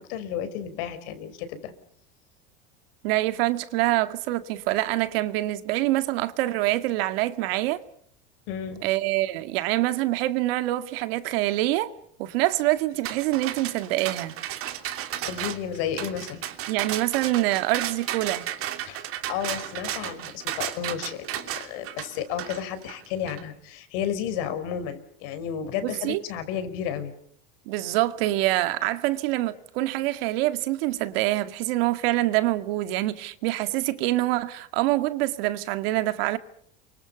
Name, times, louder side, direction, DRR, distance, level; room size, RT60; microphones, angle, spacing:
voice 1, 0.0-1.7 8.5-8.9 15.3-16.5 18.9-27.1, left 9 dB, 70° left, 5.2 m, -32 dB
voice 2, 3.0-7.8 8.8-11.9 12.2-14.3 16.7-18.5 25.8-26.2 27.7-36.4, right 17 dB, 75° right, 2.1 m, -25 dB
sound 1, 13.0-23.4, right 12 dB, 45° right, 3.0 m, -34 dB
29.5 x 24.5 x 6.9 m
supercardioid pair, 130°, 30 cm